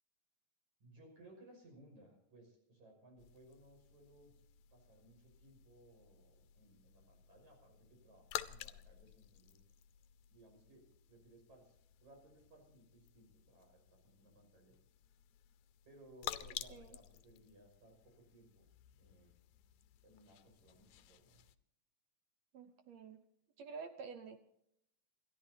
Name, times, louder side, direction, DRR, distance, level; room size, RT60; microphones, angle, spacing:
voice 1, 0.8-4.4 4.7-9.7 10.3-11.7 12.0-14.8 15.8-18.7 19.0-19.3 20.0-21.4, right 1 dB, 55° right, 1 dB, 7.2 m, -62 dB
sound 1, 3.2-21.5, left 13 dB, 80° left, 1.7 m, -52 dB
voice 2, 22.5-23.2 23.6-24.4, right 5 dB, 70° right, 8 dB, 1.7 m, -49 dB
28.5 x 13.5 x 2.8 m, 0.75 s
omnidirectional pair, 4.0 m